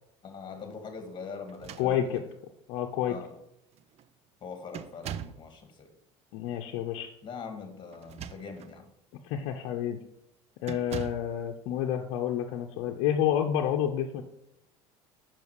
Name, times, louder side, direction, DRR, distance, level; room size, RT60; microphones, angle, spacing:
voice 1, 0.2-2.1 3.1-3.4 4.4-5.9 7.2-8.9, left 5 dB, 35° left, 7 dB, 1.9 m, -42 dB
sound 1, 1.5-2.4 3.3-3.4 3.7-4.1 4.7-5.5 7.9-8.8 9.3-9.5 10.6-11.3, right 9 dB, 50° right, 0.5 m, -41 dB
voice 2, 1.8-2.2 2.7-3.1 6.3-7.1 9.2-10.0 10.6-14.2, left 10 dB, 70° left, 3 dB, 0.8 m, -29 dB
7.1 x 5.8 x 4.8 m, 0.77 s
supercardioid pair, 85°, 14 cm